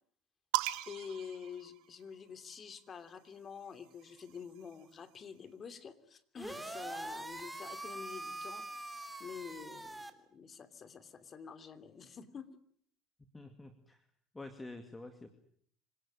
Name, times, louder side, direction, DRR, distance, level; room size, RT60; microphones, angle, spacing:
sound 1, 0.5-2.3 3.4-5.1, right 18 dB, 80° right, 1.7 m, -39 dB
voice 1, 0.9-12.5, left 6 dB, 35° left, 10 dB, 2.8 m, -48 dB
sound 2, 6.4-10.1, right 2 dB, 10° right, 3.0 m, -43 dB
voice 2, 13.2-14.1 14.3-15.3, left 2 dB, 15° left, 7 dB, 2.4 m, -48 dB
26.5 x 18.0 x 8.9 m, 0.62 s
supercardioid pair, 100°, 0 cm